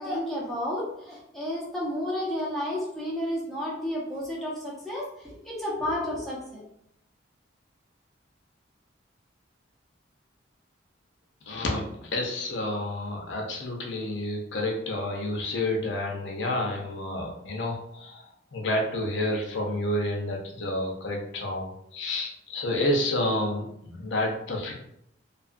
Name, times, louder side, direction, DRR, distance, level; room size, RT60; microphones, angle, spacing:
voice 1, 0.0-6.6, left 1 dB, ahead, -6 dB, 0.8 m, -31 dB
voice 2, 11.5-18.2 18.5-24.7, left 1 dB, 70° left, 0 dB, 0.6 m, -29 dB
2.7 x 2.4 x 2.5 m, 0.74 s
head